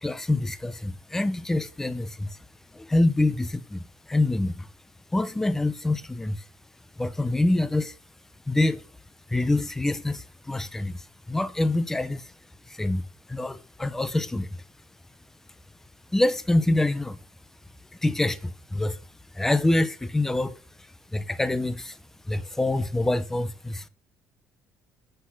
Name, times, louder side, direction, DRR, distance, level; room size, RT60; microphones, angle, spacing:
voice 1, 0.0-2.4 2.7-4.7 5.1-6.4 7.0-7.9 8.5-8.8 9.3-12.3 12.7-14.6 16.1-17.2 18.0-19.0 19.3-20.6 21.1-22.0 22.3-23.9, left 2 dB, 5° left, 0.6 m, -26 dB
7.7 x 6.3 x 5.7 m
cardioid pair, 165°, 6 cm